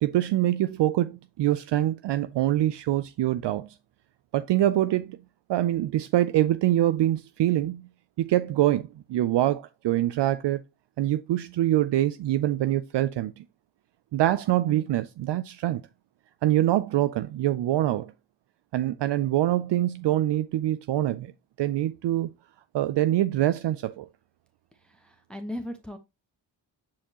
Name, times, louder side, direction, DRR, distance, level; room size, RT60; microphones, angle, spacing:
voice 1, 0.0-3.8 4.3-5.2 5.5-7.9 8.2-10.6 11.0-13.4 14.1-15.8 16.4-18.1 18.7-21.3 21.6-22.3 22.7-24.1, right 13 dB, 65° right, 0.5 m, -24 dB
voice 2, 24.8-26.0, left 1 dB, ahead, 1.0 m, -37 dB
7.4 x 4.4 x 2.9 m
cardioid pair, 55°, 45 cm